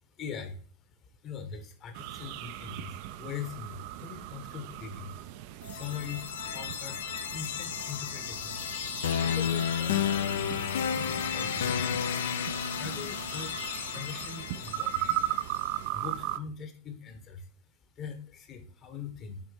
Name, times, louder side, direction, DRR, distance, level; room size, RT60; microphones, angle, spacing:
voice 1, 0.2-0.6 1.1-8.7 9.2-11.9 12.6-13.5 13.9-15.1 15.9-17.5 17.9-19.4, left 7 dB, 30° left, 7 dB, 1.0 m, -42 dB
quiet forest with frogs and birds, 1.9-16.4, right 13 dB, 45° right, 0.4 m, -38 dB
sound 1, 5.6-15.6, left 8 dB, 60° left, 0.4 m, -32 dB
7.3 x 4.9 x 3.2 m, 0.43 s
figure-of-eight pair, 90°, 0 cm